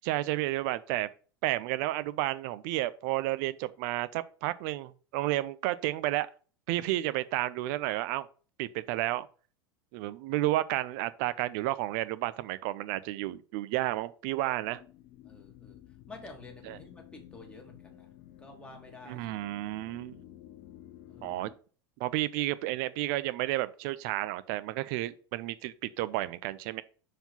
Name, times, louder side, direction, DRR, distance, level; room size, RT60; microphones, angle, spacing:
voice 1, 0.0-1.1 1.4-6.3 6.7-8.3 8.6-9.3 9.9-14.8 16.6-16.8 19.1-20.2 21.2-21.5 22.0-26.8, right 16 dB, 50° right, 0.6 m, -31 dB
sound 1, 14.3-21.6, left 12 dB, 45° left, 0.9 m, -53 dB
voice 2, 15.2-15.8 16.1-18.1 18.4-19.2 21.0-21.4, left 2 dB, 10° left, 2.2 m, -50 dB
5.6 x 4.7 x 5.5 m
figure-of-eight pair, 85°, 13 cm